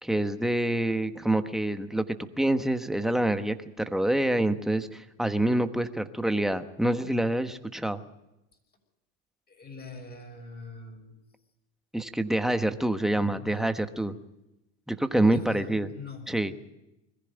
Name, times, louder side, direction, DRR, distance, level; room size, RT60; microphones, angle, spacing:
voice 1, 0.0-8.0 11.9-14.1 14.9-15.9 16.3-16.5, right 1 dB, ahead, 8 dB, 1.2 m, -26 dB
voice 2, 9.5-11.1 13.1-13.8 15.3-16.4, left 3 dB, 25° left, 4 dB, 6.6 m, -43 dB
21.5 x 15.0 x 9.0 m, 0.93 s
supercardioid pair, 110°, 37 cm